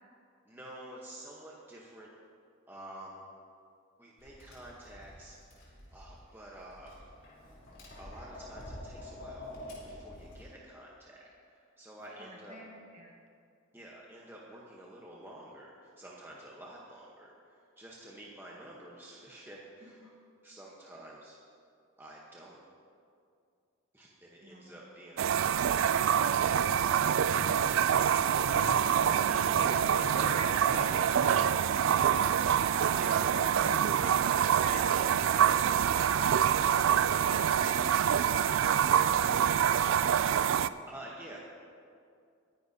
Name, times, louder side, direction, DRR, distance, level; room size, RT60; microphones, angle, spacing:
voice 1, 0.5-2.1 2.7-3.2 4.0-5.4 5.9-6.9 8.0-9.5 9.8-11.2 11.8-12.5 13.7-20.1 20.4-21.4 22.0-22.6 23.9-26.5 40.9-41.4, right 1 dB, 10° right, -4 dB, 1.0 m, -49 dB
Tap, 4.2-10.4, left 1 dB, 65° left, 3.6 m, -48 dB
voice 2, 12.2-13.2 19.8-20.1 24.4-24.8 28.6-29.7 30.0-31.8 32.1-33.6 33.9-35.7 37.3-38.0, right 1 dB, 35° right, 0 dB, 1.5 m, -46 dB
sound 1, 25.2-40.7, right 8 dB, 70° right, 0.3 m, -26 dB
Walk footsteps, 27.2-34.4, left 2 dB, 85° left, 0.9 m, -44 dB
21.5 x 10.0 x 2.8 m, 2.4 s
head